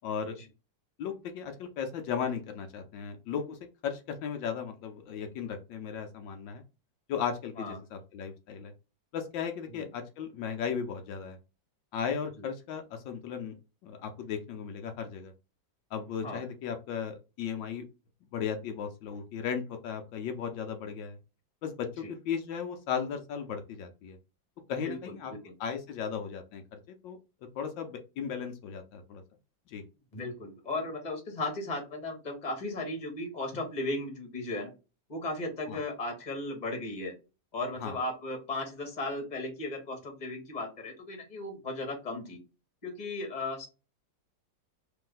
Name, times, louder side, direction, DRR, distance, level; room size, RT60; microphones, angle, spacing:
voice 1, 0.0-0.4 1.0-6.6 7.1-8.7 9.1-11.4 11.9-13.5 13.8-15.3 15.9-17.8 18.3-21.2 21.6-24.2 24.7-25.3 25.6-27.2 27.6-29.2 29.7-29.8 35.7-35.8 37.8-38.0, left 7 dB, 80° left, 6 dB, 1.4 m, -36 dB
voice 2, 30.1-34.7 35.1-37.1 37.5-42.4 42.8-43.7, left 2 dB, 25° left, 2 dB, 1.3 m, -36 dB
3.4 x 3.1 x 3.7 m, 0.30 s
omnidirectional pair, 2.0 m